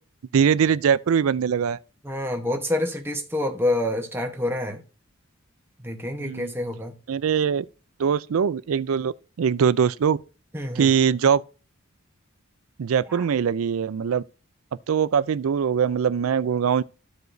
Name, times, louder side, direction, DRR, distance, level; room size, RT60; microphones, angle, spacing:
voice 1, 0.3-1.8 6.2-6.5 7.1-7.7 8.0-10.2 10.8-11.4 12.8-14.2 14.9-16.8, right 7 dB, 75° right, 0.4 m, -22 dB
voice 2, 2.0-4.8 5.8-6.9 10.5-10.9 13.1-13.2, left 1 dB, 10° right, 1.0 m, -27 dB
13.5 x 4.9 x 2.6 m
head